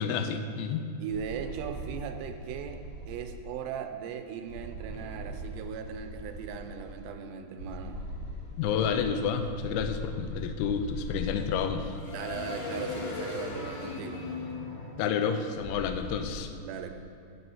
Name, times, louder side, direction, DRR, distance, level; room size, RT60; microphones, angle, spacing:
voice 1, 0.0-0.9 8.6-12.0 15.0-16.5, left 6 dB, 85° left, 7 dB, 2.2 m, -30 dB
voice 2, 1.0-8.0 12.1-14.3 16.6-16.9, right 7 dB, 85° right, 6 dB, 2.6 m, -38 dB
sound 1, 1.1-3.4 4.5-7.0 7.6-16.4, left 1 dB, 60° left, 3.0 m, -39 dB
6.3 x 6.0 x 6.9 m, 2.7 s
omnidirectional pair, 5.0 m